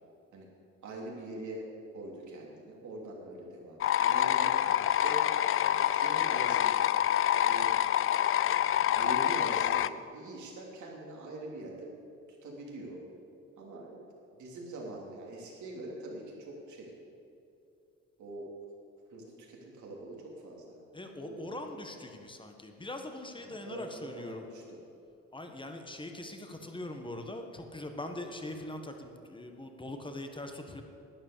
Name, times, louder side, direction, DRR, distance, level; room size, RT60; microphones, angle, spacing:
voice 1, 0.8-1.7 1.9-4.6 5.0-5.2 5.8-6.9 7.4-7.7 8.9-11.9 12.4-13.0 13.6-14.1 14.3-16.9 18.2-18.5 19.1-20.8 21.2-21.6 23.5-24.6, right 2 dB, 75° right, -2 dB, 3.2 m, -43 dB
sound 1, 3.8-9.9, left 11 dB, 45° left, 0.4 m, -27 dB
voice 2, 20.9-24.5 25.3-30.8, left 1 dB, 15° left, 5 dB, 1.4 m, -42 dB
12.0 x 9.6 x 6.8 m, 2.6 s
cardioid pair, 90°, 30 cm